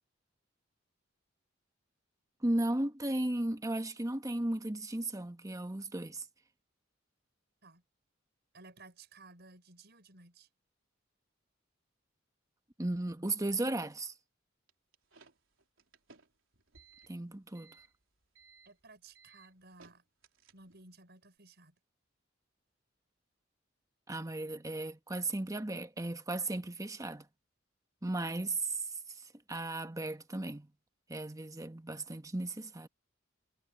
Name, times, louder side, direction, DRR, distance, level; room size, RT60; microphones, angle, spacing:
voice 1, 2.4-6.2 12.8-14.1 17.1-17.7 24.1-27.2 28.0-28.8 29.5-30.7 31.1-32.9, right 2 dB, 15° right, 1.2 m, -35 dB
voice 2, 8.5-10.5 18.6-20.0 20.5-21.7, right 3 dB, 55° right, 6.3 m, -56 dB
sound 1, 14.7-20.9, right 4 dB, 80° right, 4.0 m, -61 dB
head